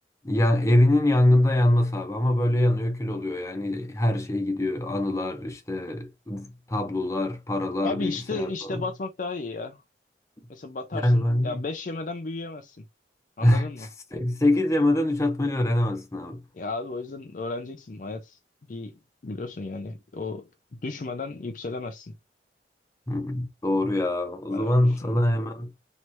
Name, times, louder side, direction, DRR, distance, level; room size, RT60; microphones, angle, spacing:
voice 1, 0.2-8.8 10.9-11.6 13.4-16.4 23.1-25.7, left 1 dB, 15° left, 0.8 m, -24 dB
voice 2, 7.8-9.8 10.5-12.8 13.4-13.9 16.5-18.4 18.7-22.1 24.5-25.2, left 3 dB, 45° left, 0.5 m, -34 dB
3.3 x 3.0 x 4.2 m
head